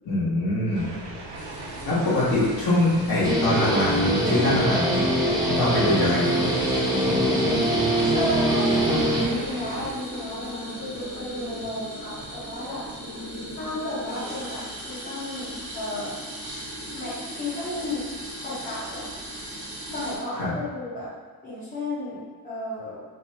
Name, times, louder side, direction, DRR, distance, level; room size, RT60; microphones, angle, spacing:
voice 1, 0.0-0.9 1.8-5.0 5.4-6.5 20.4-20.5, left 1 dB, 60° left, -9 dB, 1.5 m, -23 dB
sound 1, 0.7-9.9, right 2 dB, 70° right, 0.7 m, -39 dB
sound 2, 1.3-20.2, equal, 40° right, 1.4 m, -38 dB
Guitar, 3.2-9.8, right 1 dB, 10° right, 0.4 m, -23 dB
voice 2, 8.1-12.9 13.6-16.2 16.9-18.0 18.4-19.1 19.9-21.1 21.4-23.0, left 1 dB, 20° left, -11 dB, 1.0 m, -33 dB
3.1 x 2.3 x 4.1 m, 1.4 s
cardioid pair, 165°, 41 cm